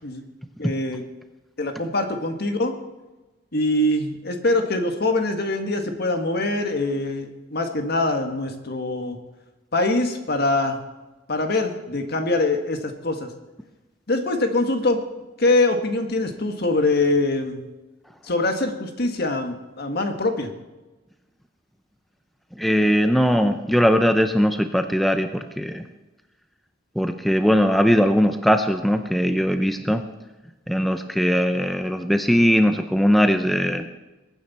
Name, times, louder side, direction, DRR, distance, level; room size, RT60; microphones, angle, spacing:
voice 1, 0.6-1.0 1.6-2.7 3.5-9.2 9.7-10.8 11.3-13.3 14.1-15.0 15.4-17.7 18.2-20.5, left 2 dB, 55° left, 5 dB, 1.7 m, -23 dB
voice 2, 22.6-25.8 27.0-30.0 30.7-33.9, equal, ahead, 7 dB, 0.6 m, -20 dB
22.5 x 9.5 x 4.2 m, 1.1 s
head